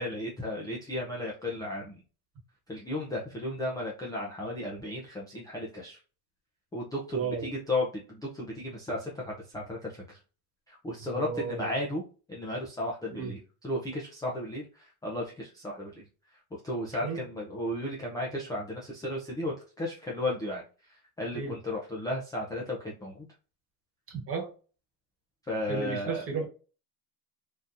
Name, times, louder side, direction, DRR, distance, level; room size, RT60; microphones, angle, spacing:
voice 1, 0.0-2.0 2.7-6.0 6.7-10.0 10.7-12.0 12.3-13.4 13.6-16.0 16.6-20.6 21.2-23.2 25.5-26.2, left 1 dB, 10° left, 0.4 m, -34 dB
voice 2, 7.1-7.5 11.2-11.7 13.1-13.3 17.0-17.2 21.3-21.5 24.1-24.5 25.7-26.5, right 5 dB, 30° right, 1.2 m, -33 dB
3.7 x 2.8 x 2.5 m
cardioid pair, 155°, 44 cm